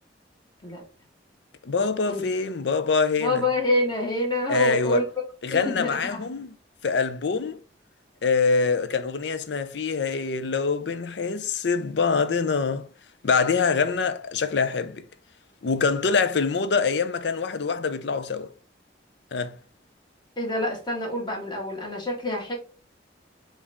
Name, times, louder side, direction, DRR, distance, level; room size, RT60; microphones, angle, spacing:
voice 1, 1.6-3.5 4.5-5.1 5.4-6.5 6.8-7.6 8.2-12.9 13.2-15.0 15.6-18.5 19.3-19.5, left 5 dB, 70° left, 0.5 m, -24 dB
voice 2, 3.2-5.0 5.5-6.2 20.4-22.5, left 1 dB, 25° left, 1.5 m, -27 dB
5.0 x 2.6 x 3.4 m
head